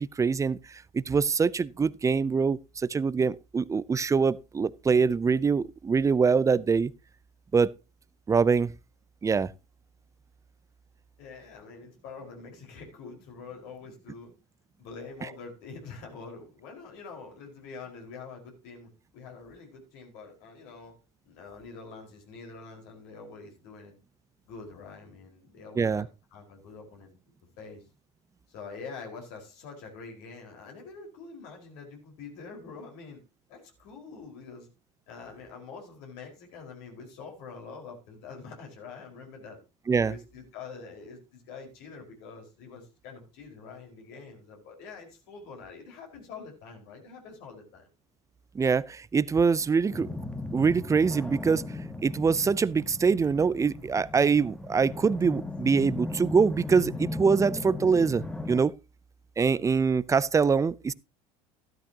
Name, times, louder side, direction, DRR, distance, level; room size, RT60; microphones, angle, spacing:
voice 1, 0.0-6.9 7.5-7.7 8.3-8.7 9.2-9.5 25.8-26.1 39.9-40.1 48.5-50.1 50.5-51.6 52.0-58.7 59.4-60.9, right 5 dB, 20° right, 0.5 m, -24 dB
voice 2, 11.2-14.3 14.8-21.0 21.2-24.0 24.4-27.1 27.6-27.8 28.5-33.2 33.5-34.7 35.1-39.6 40.1-47.9, left 4 dB, 65° left, 4.9 m, -45 dB
sound 1, 49.9-58.6, left 2 dB, 5° left, 1.4 m, -37 dB
13.0 x 12.0 x 2.9 m
hypercardioid pair, 90°, 18 cm